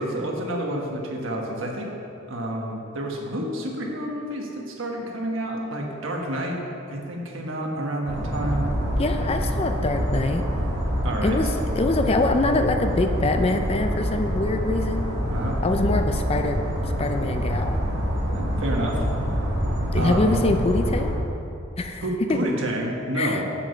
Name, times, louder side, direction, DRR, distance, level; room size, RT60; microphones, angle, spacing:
voice 1, 0.0-1.9 2.3-6.6 6.9-8.7 11.0-11.4 15.3-15.6 18.3-19.0 20.0-20.4 22.0-23.5, right 1 dB, 75° right, 0 dB, 1.4 m, -29 dB
sound 1, 8.1-21.1, equal, 55° right, 1.9 m, -26 dB
voice 2, 9.0-10.4 11.2-11.5 11.8-15.1 15.6-16.6 17.0-17.8 19.9-21.1 21.8-22.0 23.2-23.4, left 2 dB, 30° left, 6 dB, 0.4 m, -24 dB
7.2 x 7.0 x 5.5 m, 2.7 s
head